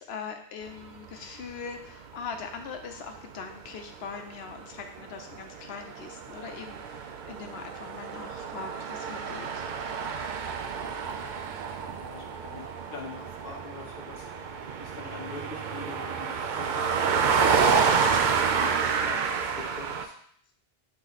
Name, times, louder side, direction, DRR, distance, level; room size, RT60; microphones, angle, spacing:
voice 1, 0.0-9.6, left 5 dB, 75° left, 5 dB, 1.0 m, -41 dB
sound 1, 1.2-1.5 2.2-2.4 2.7-20.0, right 6 dB, 55° right, 0.6 m, -29 dB
voice 2, 12.0-14.3 14.8-17.6 18.3-19.2 19.8-20.1, left 4 dB, 60° left, 1 dB, 1.2 m, -44 dB
7.7 x 3.0 x 4.1 m, 0.62 s
omnidirectional pair, 1.1 m